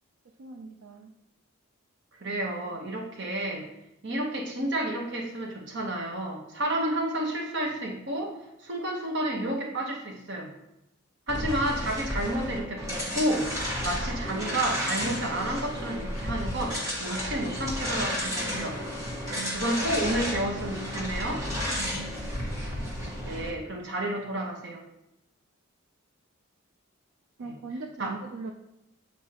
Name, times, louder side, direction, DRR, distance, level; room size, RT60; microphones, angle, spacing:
voice 1, 0.4-1.1 19.3-19.6 21.8-22.0 27.4-28.5, right 4 dB, 75° right, 2 dB, 0.5 m, -40 dB
voice 2, 2.2-3.6 4.0-10.5 11.3-13.5 13.8-18.8 19.5-21.5 23.2-24.8 27.4-27.5 28.0-28.1, right 1 dB, 55° right, 0 dB, 1.1 m, -31 dB
sound 1, 11.3-23.5, equal, 15° right, 1.3 m, -32 dB
8.4 x 4.5 x 2.9 m, 0.87 s
head